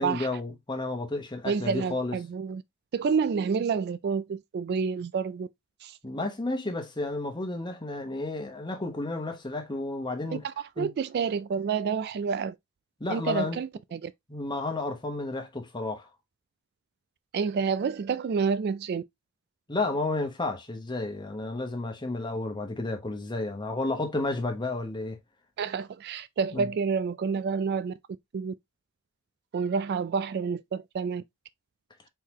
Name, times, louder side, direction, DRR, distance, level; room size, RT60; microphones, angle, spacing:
voice 1, 0.0-2.2 6.0-10.4 10.8-10.9 13.0-13.6 14.3-16.1 19.7-25.2 26.5-26.7, left 2 dB, 20° left, 1.0 m, -32 dB
voice 2, 1.4-2.6 2.9-5.5 5.8-6.0 10.3-12.6 13.1-14.1 17.3-19.0 25.6-27.9 28.3-28.5 29.5-31.2, right 5 dB, 45° right, 0.3 m, -29 dB
4.5 x 3.9 x 2.9 m
head